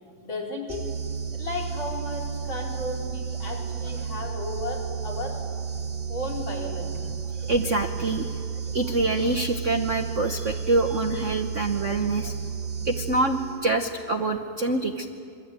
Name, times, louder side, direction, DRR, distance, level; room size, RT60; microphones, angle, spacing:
voice 1, 0.2-0.8 1.3-5.4 6.1-7.0, left 2 dB, 65° left, -2 dB, 5.3 m, -34 dB
sound 1, 0.7-13.8, right 6 dB, 30° right, 1.3 m, -32 dB
voice 2, 7.4-8.3 8.7-12.3 12.8-15.1, right 2 dB, 45° right, 5 dB, 1.1 m, -25 dB
27.0 x 24.0 x 8.9 m, 2.4 s
omnidirectional pair, 2.4 m